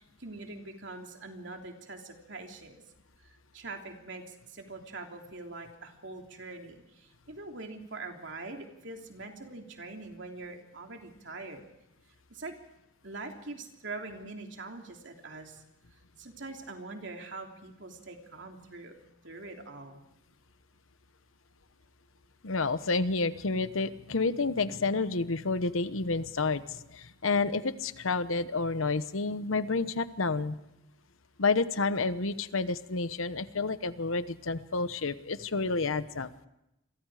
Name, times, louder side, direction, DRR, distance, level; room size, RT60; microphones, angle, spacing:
voice 1, 0.0-2.8 3.2-11.6 12.3-12.5 13.0-15.6 16.2-19.0 19.2-20.0, right 3 dB, 60° right, 3 dB, 3.2 m, -43 dB
voice 2, 22.4-30.6 31.4-36.3, left 3 dB, 80° left, 13 dB, 1.1 m, -30 dB
28.5 x 23.0 x 5.0 m, 0.88 s
head